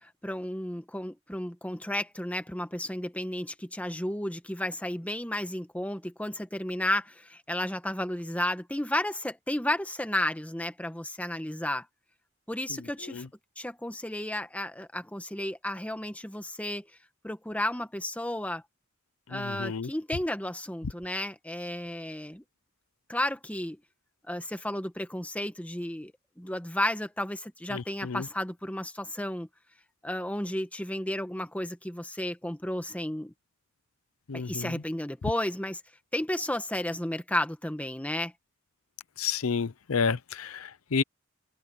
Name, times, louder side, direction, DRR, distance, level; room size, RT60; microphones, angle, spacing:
voice 1, 0.0-11.9 12.5-13.3 13.6-16.9 17.2-18.6 19.3-22.4 23.1-23.8 24.3-26.1 26.4-29.5 30.0-33.3 34.3-35.8 36.1-38.3, left 1 dB, 5° left, 1.3 m, -33 dB
voice 2, 19.3-19.9 27.7-28.2 34.3-34.7 39.2-41.0, left 5 dB, 85° left, 0.7 m, -30 dB
head